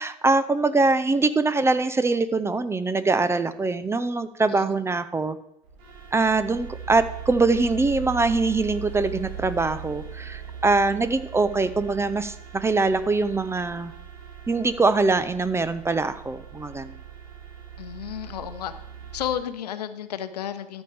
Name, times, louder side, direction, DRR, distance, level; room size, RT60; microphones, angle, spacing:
voice 1, 0.0-5.4 6.1-13.9 14.5-17.0, right 3 dB, 10° right, 13 dB, 0.5 m, -23 dB
sound 1, 5.6-19.4, right 8 dB, 55° right, 2.6 m, -40 dB
voice 2, 17.8-18.7 19.1-20.8, left 10 dB, 75° left, 11 dB, 0.8 m, -32 dB
13.0 x 7.1 x 3.4 m, 0.81 s
figure-of-eight pair, 80°, 21 cm